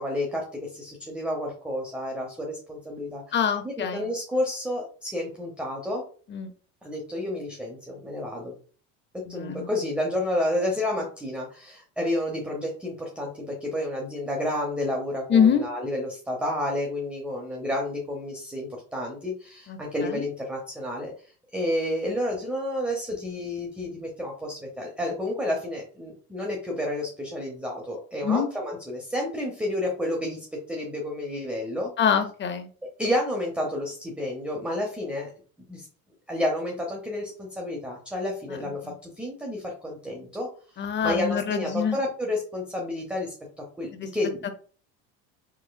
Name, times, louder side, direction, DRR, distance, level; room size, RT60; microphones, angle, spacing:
voice 1, 0.0-3.4 3.6-6.0 6.8-8.6 9.3-31.9 33.0-35.3 35.7-35.9 36.3-40.5 40.7-43.3 43.8-44.5, left 1 dB, 5° right, -1 dB, 0.8 m, -30 dB
voice 2, 3.3-4.1 6.3-6.5 9.3-9.7 15.3-15.6 19.7-20.3 28.2-28.5 32.0-32.7 38.8-38.9 40.8-42.0 43.9-44.1, left 7 dB, 25° left, 8 dB, 0.7 m, -25 dB
3.5 x 3.1 x 2.3 m, 0.40 s
supercardioid pair, 90°, 41 cm